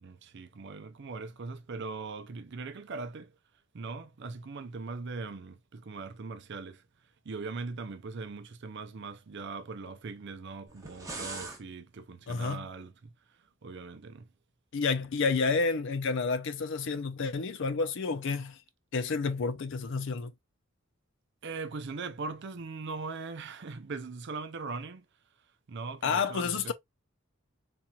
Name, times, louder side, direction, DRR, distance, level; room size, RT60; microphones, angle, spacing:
voice 1, 0.0-3.3 3.7-6.9 7.2-14.3 21.4-25.1 25.7-26.7, right 4 dB, 55° right, 0.5 m, -40 dB
sound 1, 10.7-11.6, right 3 dB, 15° right, 1.1 m, -40 dB
voice 2, 12.3-12.7 14.7-18.6 18.9-20.3 26.0-26.7, left 4 dB, 60° left, 0.5 m, -30 dB
4.1 x 2.9 x 2.3 m
head